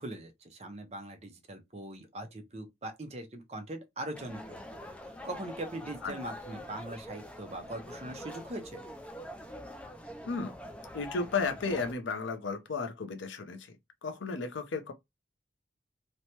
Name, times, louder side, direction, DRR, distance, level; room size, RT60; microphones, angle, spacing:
voice 1, 0.0-4.9 5.2-8.8, right 1 dB, 35° right, 0.6 m, -41 dB
sound 1, 4.1-11.9, equal, 5° left, 0.3 m, -45 dB
voice 2, 10.9-13.8 14.0-14.9, left 4 dB, 85° left, 0.6 m, -34 dB
3.1 x 2.1 x 2.8 m
head